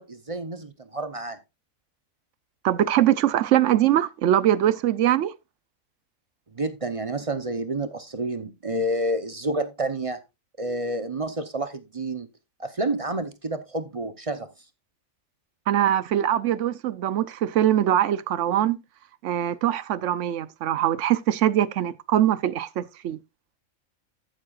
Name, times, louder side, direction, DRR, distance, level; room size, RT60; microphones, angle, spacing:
voice 1, 0.0-1.4 6.5-10.2 10.6-12.3 12.6-14.5, right 1 dB, 30° right, 0.7 m, -29 dB
voice 2, 2.6-5.3 15.7-18.8 19.2-23.2, right 11 dB, 65° right, 0.9 m, -22 dB
13.5 x 7.5 x 2.4 m
omnidirectional pair, 1.4 m